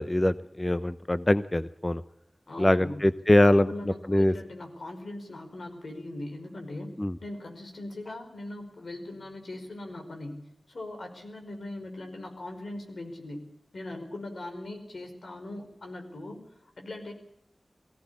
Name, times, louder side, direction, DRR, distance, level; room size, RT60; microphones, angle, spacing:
voice 1, 0.0-2.0 2.6-3.7 4.1-4.3 7.0-7.1, left 1 dB, 25° left, 13 dB, 0.7 m, -23 dB
voice 2, 2.5-3.0 3.4-6.9 7.2-13.4 13.7-16.4 16.8-17.1, left 2 dB, 80° left, 4 dB, 5.1 m, -40 dB
20.5 x 16.5 x 8.5 m, 0.76 s
wide cardioid pair, 70°, 0 cm